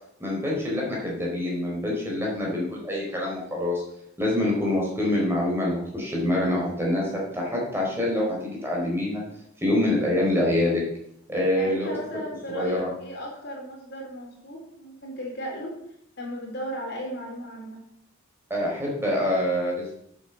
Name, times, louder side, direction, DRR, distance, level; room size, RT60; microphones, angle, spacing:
voice 1, 0.2-3.8 4.2-9.2 9.6-10.8 11.3-11.9 12.5-12.9 18.5-19.9, left 1 dB, 10° right, -3 dB, 4.3 m, -25 dB
voice 2, 11.6-15.7 16.2-17.8, equal, 50° left, -2 dB, 4.6 m, -36 dB
9.3 x 8.6 x 8.0 m, 0.73 s
head